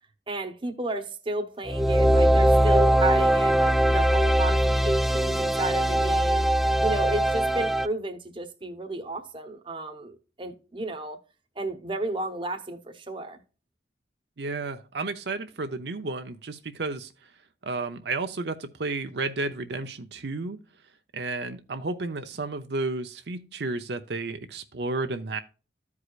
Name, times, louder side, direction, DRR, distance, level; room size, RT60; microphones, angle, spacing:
voice 1, 0.3-6.5 6.8-11.2 11.6-13.4, right 2 dB, 30° right, 1.0 m, -32 dB
sound 1, 1.7-7.9, right 1 dB, ahead, 0.3 m, -21 dB
voice 2, 14.4-17.1 17.6-20.6 21.1-25.4, right 3 dB, 70° right, 0.7 m, -32 dB
14.0 x 4.8 x 2.4 m
head